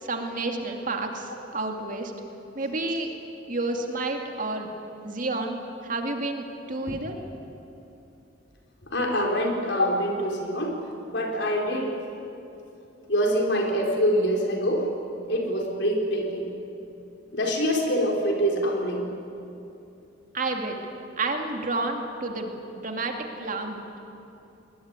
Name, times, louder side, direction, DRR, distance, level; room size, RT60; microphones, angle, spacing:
voice 1, 0.0-2.1 2.5-3.1 3.5-4.7 5.0-7.2 20.3-20.8 21.2-24.0, right 2 dB, 45° right, 3 dB, 2.4 m, -30 dB
voice 2, 8.9-10.8 11.1-11.9 13.1-14.9 15.3-16.5 17.3-19.1, equal, 65° left, 1 dB, 4.6 m, -25 dB
22.5 x 20.0 x 9.7 m, 2.8 s
head